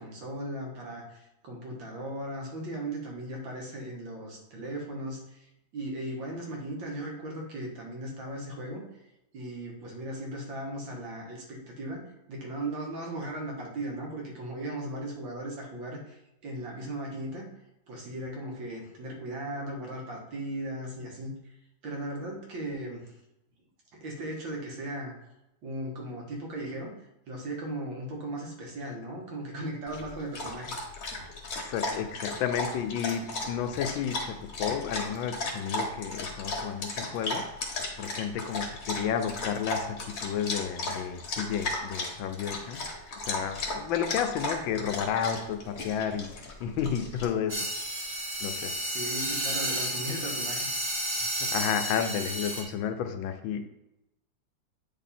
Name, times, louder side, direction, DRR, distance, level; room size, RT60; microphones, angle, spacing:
voice 1, 0.0-8.8 9.3-12.0 12.3-17.5 17.9-21.3 21.8-23.1 23.9-25.1 25.6-26.9 27.3-30.7 48.9-50.7, right 1 dB, 75° right, -1 dB, 2.2 m, -37 dB
Dog, 29.9-47.2, left 2 dB, 50° left, 1.5 m, -35 dB
voice 2, 31.6-37.4 38.0-39.9 40.2-42.8 43.2-46.3 46.6-47.7 48.4-48.7 51.4-53.6, left 8 dB, 80° left, 7 dB, 1.4 m, -31 dB
sound 1, 47.5-52.6, right 1 dB, 35° right, 1.2 m, -32 dB
9.1 x 3.4 x 4.2 m, 0.88 s
omnidirectional pair, 2.1 m